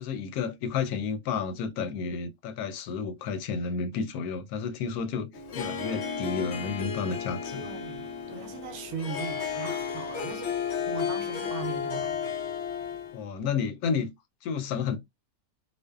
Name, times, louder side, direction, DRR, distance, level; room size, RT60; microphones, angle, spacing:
voice 1, 0.0-5.3 5.6-7.7 13.1-14.1 14.4-15.0, left 5 dB, 85° left, 1.1 m, -31 dB
Harp, 5.3-13.2, left 7 dB, 60° left, 0.8 m, -33 dB
voice 2, 7.6-12.3, right 6 dB, 65° right, 0.8 m, -39 dB
2.5 x 2.3 x 2.2 m
omnidirectional pair, 1.5 m